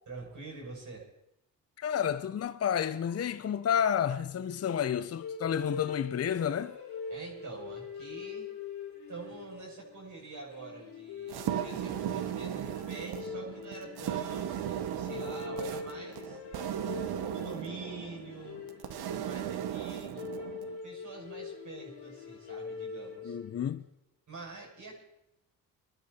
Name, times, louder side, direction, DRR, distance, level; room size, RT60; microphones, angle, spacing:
voice 1, 0.1-1.1 7.1-8.5 9.1-16.4 17.3-18.6 19.2-20.2 20.8-23.4 24.3-25.0, right 3 dB, 50° right, 7.5 m, -46 dB
voice 2, 1.8-6.8 23.2-23.9, left 8 dB, 40° left, 0.7 m, -30 dB
sound 1, 5.2-23.7, left 5 dB, 90° left, 5.7 m, -43 dB
sound 2, 11.3-20.8, right 10 dB, 75° right, 1.2 m, -37 dB
21.0 x 12.0 x 4.3 m
supercardioid pair, 65°, 39 cm